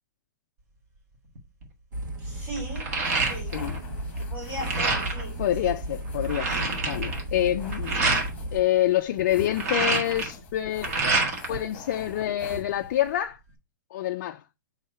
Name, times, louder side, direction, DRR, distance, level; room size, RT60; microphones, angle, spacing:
sound 1, 1.3-1.6 2.0-3.8 4.1-5.3 5.8-5.9 6.1-8.3 9.3-11.6 11.9-12.8, right 3 dB, 45° right, 1.7 m, -27 dB
sound 2, 1.9-8.6, right 1 dB, 70° right, 1.7 m, -34 dB
voice 1, 2.2-3.6 4.2-5.8 11.5-11.8, right 1 dB, 15° right, 4.5 m, -39 dB
sound 3, 3.0-13.1, left 3 dB, 15° left, 1.3 m, -44 dB
voice 2, 5.4-6.6 6.9-8.0 8.5-10.9 11.5-13.4 13.9-14.4, left 12 dB, 40° left, 0.4 m, -26 dB
6.4 x 3.1 x 5.5 m
hypercardioid pair, 170°, 11 cm